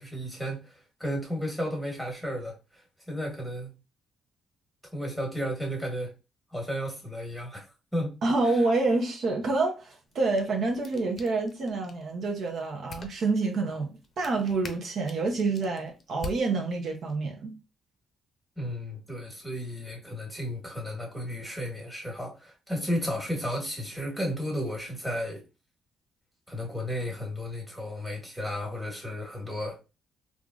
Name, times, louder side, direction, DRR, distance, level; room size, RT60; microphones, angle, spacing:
voice 1, 0.0-2.5 3.1-3.7 4.9-6.1 6.5-7.6 7.9-8.2 18.6-25.4 26.5-29.8, equal, ahead, 1.4 m, -33 dB
voice 2, 8.2-13.9 14.2-17.6, right 3 dB, 60° right, 0.7 m, -27 dB
sound 1, 10.1-17.2, left 4 dB, 45° left, 0.6 m, -47 dB
3.5 x 2.5 x 2.4 m
cardioid pair, 90°, 0 cm